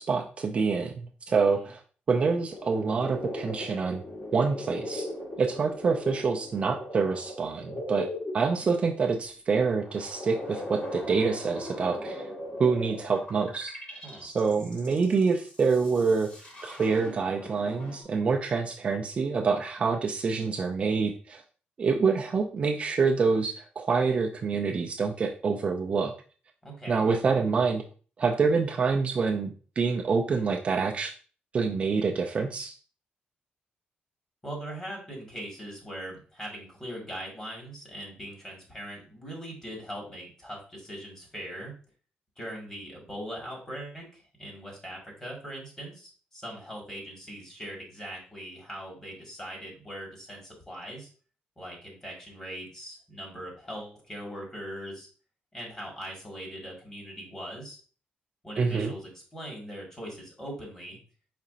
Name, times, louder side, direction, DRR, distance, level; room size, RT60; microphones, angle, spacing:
voice 1, 0.0-1.8 2.1-4.0 4.3-5.1 5.4-8.1 8.3-12.3 12.6-13.8 14.2-16.3 16.6-21.4 21.8-26.1 26.9-27.8 28.2-29.5 29.8-31.1 31.5-32.7 58.6-58.9, right 5 dB, 35° right, 3 dB, 0.4 m, -26 dB
voice 2, 1.3-1.7 14.0-14.3 26.6-27.0 34.4-41.7 42.4-51.1 51.6-55.1 55.5-57.8 58.4-61.0, equal, 20° left, -2 dB, 1.9 m, -41 dB
sound 1, 2.5-9.1 9.7-18.0, left 1 dB, 40° left, 1.8 m, -39 dB
4.9 x 4.2 x 2.5 m, 0.39 s
wide cardioid pair, 150°, 3 cm